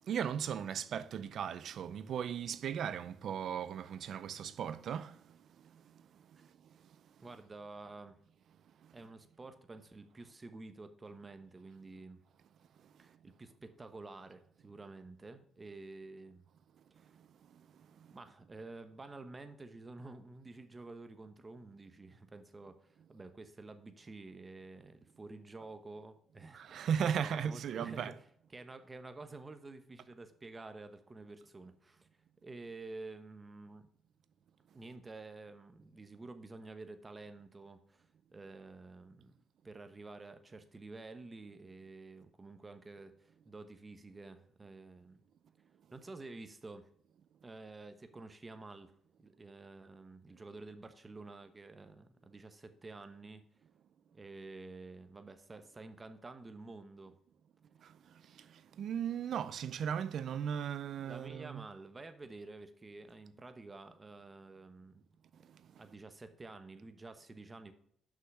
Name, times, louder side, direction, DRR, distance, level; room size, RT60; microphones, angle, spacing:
voice 1, 0.1-5.1 26.5-28.1 58.8-61.6, right 8 dB, 65° right, 0.6 m, -36 dB
voice 2, 7.2-8.2 8.9-12.2 13.0-16.5 16.9-17.1 18.1-26.9 27.2-28.1 28.5-32.1 32.4-33.9 34.7-39.4 39.6-45.2 45.9-46.9 47.4-48.9 49.2-53.4 54.1-57.2 61.0-65.0 65.8-67.7, right 3 dB, 25° right, 1.0 m, -50 dB
6.4 x 5.7 x 4.8 m
cardioid pair, 90°, 0 cm